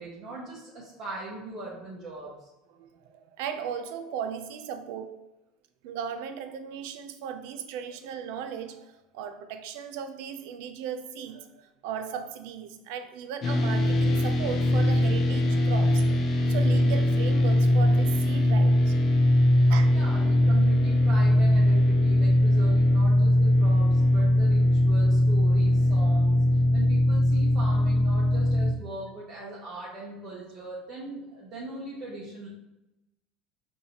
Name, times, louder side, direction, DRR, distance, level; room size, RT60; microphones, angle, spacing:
voice 1, 0.0-2.5 19.5-26.4 26.7-32.5, right 2 dB, 25° right, 0.7 m, -40 dB
voice 2, 2.8-5.2 5.8-16.1 16.5-18.9 19.7-20.0, right 7 dB, 60° right, 0.4 m, -37 dB
sound 1, 13.4-28.7, left 1 dB, 25° left, 0.4 m, -21 dB
5.6 x 2.6 x 2.8 m
cardioid pair, 175°, 0 cm